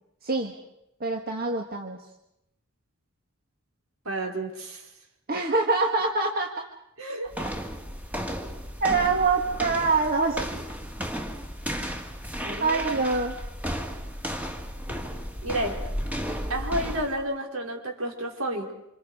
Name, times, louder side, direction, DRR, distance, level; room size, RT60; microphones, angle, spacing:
voice 1, 1.0-2.0 5.3-6.6 8.8-10.4 12.6-13.3, right 3 dB, 45° right, 2 dB, 1.8 m, -24 dB
voice 2, 4.0-4.9 7.0-7.3 12.4-13.0 15.4-15.9 16.5-18.7, right 1 dB, 70° right, 1 dB, 4.7 m, -31 dB
sound 1, 7.3-17.2, equal, 5° right, 2.0 m, -34 dB
28.0 x 27.5 x 5.0 m, 0.84 s
head